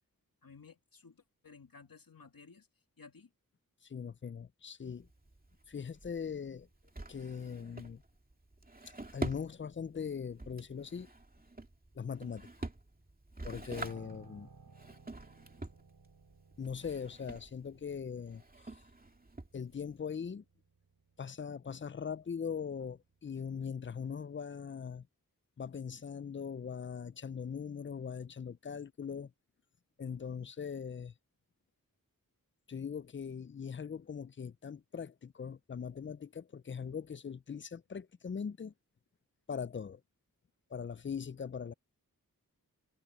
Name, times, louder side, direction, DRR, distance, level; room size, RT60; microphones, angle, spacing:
voice 1, 0.4-2.7 3.0-3.3, left 5 dB, 75° left, 2.8 m, -56 dB
voice 2, 3.8-5.1 5.7-6.7 7.1-8.0 9.1-11.1 12.0-12.5 13.4-14.5 16.6-18.4 19.5-20.4 21.2-25.1 25.6-29.3 30.0-31.1 32.7-38.7 39.5-40.0 40.7-41.7, left 6 dB, 35° left, 0.4 m, -41 dB
Drawer open or close, 4.8-20.0, right 2 dB, 25° right, 2.4 m, -47 dB
Piano, 13.8-23.1 23.4-23.7, right 4 dB, 90° right, 5.0 m, -61 dB
wide cardioid pair, 80°, 35 cm